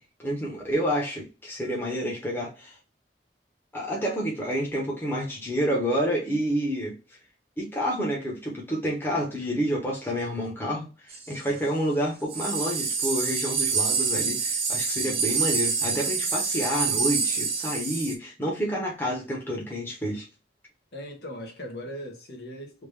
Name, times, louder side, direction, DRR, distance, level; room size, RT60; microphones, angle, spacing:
voice 1, 0.2-2.8 3.7-7.0 7.6-20.3, equal, 10° left, 1.0 m, -29 dB
sound 1, 11.1-11.5 12.3-18.1, right 5 dB, 35° right, 0.7 m, -27 dB
voice 2, 20.9-22.9, equal, 65° left, 1.0 m, -39 dB
3.5 x 2.5 x 3.3 m
head